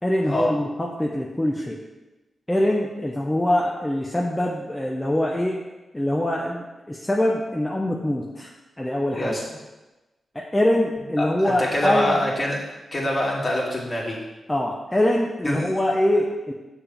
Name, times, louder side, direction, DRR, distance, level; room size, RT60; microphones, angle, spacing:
voice 1, 0.0-1.8 2.5-5.6 5.9-8.5 8.8-9.4 10.3-12.2 14.5-16.5, left 1 dB, 15° left, -2 dB, 0.9 m, -23 dB
voice 2, 11.2-12.6 12.9-14.2 15.4-15.7, left 1 dB, 40° left, -3 dB, 2.2 m, -25 dB
6.6 x 3.6 x 6.0 m, 1.1 s
supercardioid pair, 40°, 0 cm